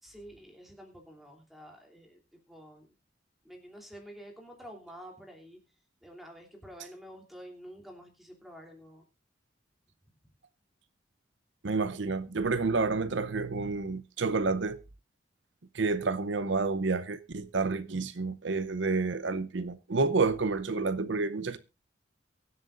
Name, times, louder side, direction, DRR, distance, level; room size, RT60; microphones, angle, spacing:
voice 1, 0.0-2.2 2.5-2.9 3.4-5.6 6.0-9.0, equal, ahead, 3.1 m, -49 dB
voice 2, 11.6-14.8 15.7-21.6, right 3 dB, 75° right, 0.7 m, -29 dB
23.0 x 8.1 x 2.5 m
head